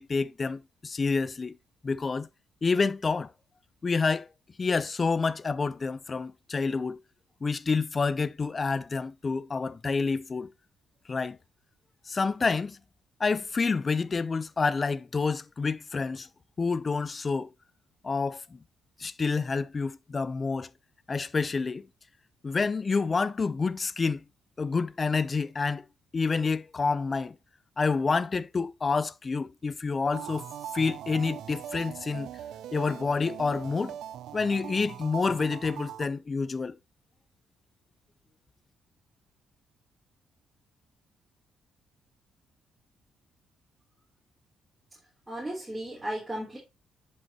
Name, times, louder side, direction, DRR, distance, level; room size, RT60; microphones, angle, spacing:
voice 1, 0.0-1.6 1.8-2.3 2.6-3.3 3.8-4.3 4.6-7.0 7.4-10.5 11.1-11.4 12.1-12.8 13.2-16.3 16.6-17.5 18.0-18.6 19.0-20.7 21.1-21.8 22.4-24.2 24.6-25.8 26.1-27.4 27.8-30.5 30.7-32.3 32.7-34.0 34.3-36.7, left 4 dB, 30° left, 0.5 m, -28 dB
sound 1, 30.1-36.1, right 10 dB, 80° right, 0.6 m, -41 dB
voice 2, 45.3-46.6, right 1 dB, 10° right, 3.2 m, -35 dB
10.5 x 5.6 x 2.9 m
cardioid pair, 90°, 0 cm